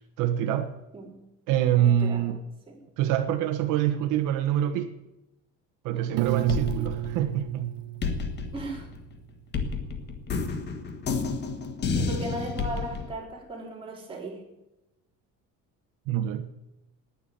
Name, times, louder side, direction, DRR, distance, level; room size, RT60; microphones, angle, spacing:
voice 1, 0.2-0.7 1.5-2.4 3.0-4.9 5.8-7.7 16.1-16.5, right 11 dB, 80° right, 8 dB, 1.2 m, -25 dB
voice 2, 1.7-2.8 5.9-6.4 8.5-8.9 11.9-14.4, right 2 dB, 15° right, -2 dB, 4.0 m, -38 dB
sound 1, 6.2-7.6 8.0-13.1, left 4 dB, 35° left, 1.6 m, -30 dB
Piano, 6.2-9.1, right 19 dB, 55° right, 0.6 m, -32 dB
19.0 x 7.3 x 8.7 m, 0.95 s
cardioid pair, 170°, 31 cm